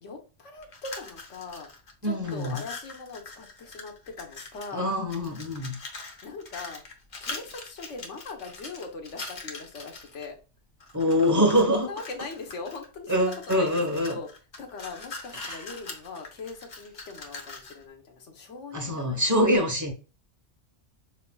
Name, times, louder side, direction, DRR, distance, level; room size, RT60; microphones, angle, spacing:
voice 1, 0.0-1.7 2.0-4.9 6.2-6.8 7.2-10.4 11.8-14.3 14.6-19.2, left 4 dB, 90° left, 1.3 m, -40 dB
sound 1, 0.6-1.9 2.2-4.8 5.1-10.2 10.8-11.7 12.0-17.8, left 3 dB, 45° left, 1.0 m, -42 dB
voice 2, 2.0-2.6 4.7-5.8 10.9-11.9 13.1-14.2 15.3-15.7 18.7-19.9, equal, 15° right, 1.0 m, -24 dB
5.8 x 3.0 x 2.3 m
omnidirectional pair, 1.2 m